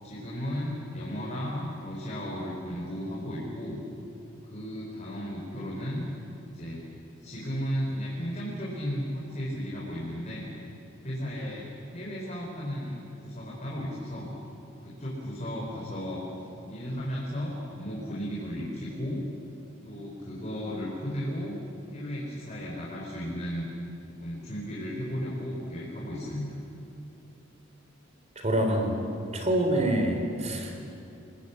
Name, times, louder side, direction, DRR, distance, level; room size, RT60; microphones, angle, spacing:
voice 1, 0.0-3.8 4.4-6.1 6.4-6.9 7.2-10.5 11.0-14.3 14.8-16.2 16.6-19.2 19.8-21.5 21.9-23.7 24.2-26.6, equal, 35° left, -5 dB, 4.9 m, -34 dB
voice 2, 28.4-29.0 29.3-30.9, right 1 dB, 35° right, 4 dB, 3.6 m, -26 dB
29.5 x 20.5 x 8.5 m, 2.8 s
head